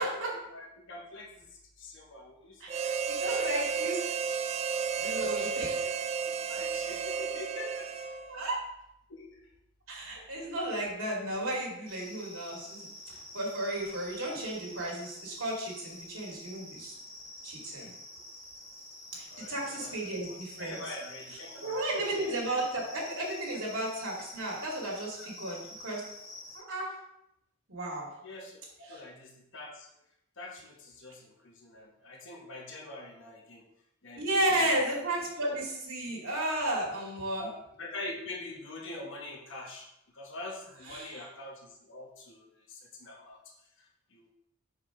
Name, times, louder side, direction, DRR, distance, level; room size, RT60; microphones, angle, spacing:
voice 1, 0.2-3.8 5.0-5.9 6.5-7.9 9.1-9.5 19.3-22.6 23.5-23.6 25.2-25.3 28.2-28.6 28.9-29.9 30.4-33.7 34.0-35.0 37.4-39.9 40.1-43.5 44.1-44.3, left 2 dB, 60° left, -1 dB, 1.1 m, -45 dB
voice 2, 2.6-4.0 5.0-5.8 8.3-8.6 9.9-16.9 17.4-17.9 19.1-20.8 21.6-26.0 26.5-26.9 27.7-28.1 34.2-37.5 40.9-41.2, right 1 dB, 85° right, -4 dB, 2.4 m, -33 dB
Harmonica, 2.7-8.5, right 6 dB, 30° right, 0.3 m, -32 dB
sound 1, 11.9-26.6, left 1 dB, 15° left, 1.2 m, -48 dB
6.2 x 4.9 x 3.7 m, 0.80 s
head